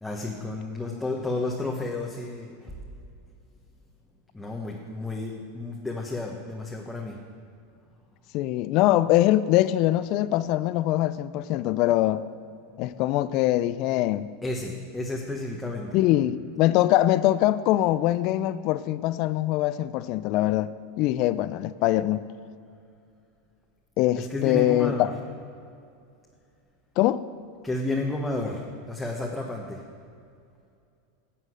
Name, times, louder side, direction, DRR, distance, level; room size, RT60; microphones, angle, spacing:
voice 1, 0.0-2.7 4.3-7.2 14.4-16.0 24.2-25.1 27.6-28.6 28.9-29.8, left 2 dB, 5° left, -2 dB, 1.2 m, -31 dB
voice 2, 8.3-12.3 12.8-14.3 15.9-22.3 24.0-25.1 27.0-27.2, left 14 dB, 55° left, 15 dB, 0.4 m, -23 dB
11.0 x 7.6 x 6.3 m, 2.5 s
hypercardioid pair, 105°, 0 cm